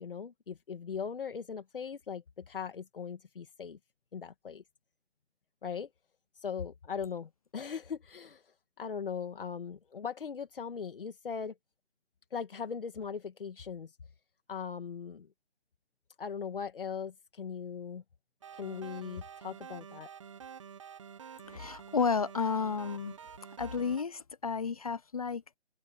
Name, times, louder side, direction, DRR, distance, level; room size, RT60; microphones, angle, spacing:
voice 1, 0.0-3.8 4.1-4.6 5.6-5.9 6.4-11.6 12.3-14.0 14.5-15.3 16.2-18.0 18.5-20.1, left 6 dB, 55° left, 1.9 m, -39 dB
sound 1, 18.4-24.0, right 7 dB, 30° right, 1.0 m, -48 dB
voice 2, 21.5-23.1 23.6-25.6, left 5 dB, 35° left, 0.7 m, -32 dB
open air
hypercardioid pair, 165°, 33 cm